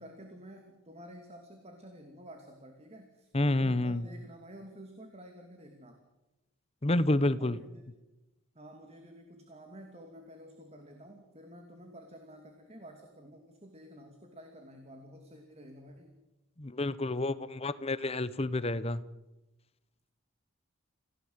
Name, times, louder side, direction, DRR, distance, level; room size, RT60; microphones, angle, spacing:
voice 1, 0.0-6.0 7.4-7.8 8.5-16.1, equal, 30° right, 4 dB, 2.6 m, -50 dB
voice 2, 3.3-4.1 6.8-7.6 16.6-19.1, left 1 dB, 30° left, 16 dB, 0.9 m, -29 dB
28.0 x 17.0 x 8.1 m, 1.0 s
head